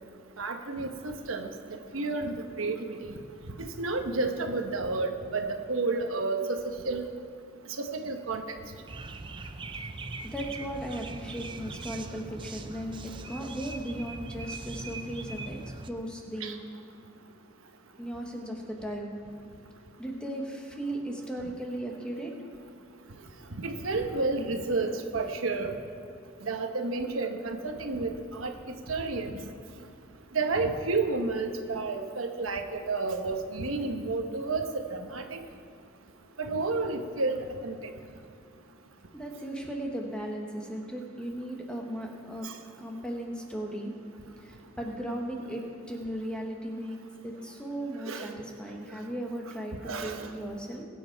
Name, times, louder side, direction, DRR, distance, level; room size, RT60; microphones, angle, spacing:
voice 1, 0.4-1.5 1.9-3.0 3.6-7.1 7.8-8.4 16.4-16.5 23.6-25.8 26.4-28.5 28.9-29.4 30.3-35.4 36.4-37.4 37.6-37.9 42.4-42.5 48.0-48.3 49.8-50.3, right 3 dB, 85° right, 5 dB, 1.1 m, -31 dB
sound 1, 8.9-15.9, right 3 dB, 25° right, 0.5 m, -41 dB
voice 2, 10.2-15.6 15.9-16.6 18.0-19.2 20.0-22.3 39.1-42.5 42.8-43.9 44.4-47.0 47.2-49.8 50.0-50.8, right 1 dB, 5° left, 0 dB, 1.3 m, -36 dB
21.5 x 7.8 x 4.6 m, 2.4 s
head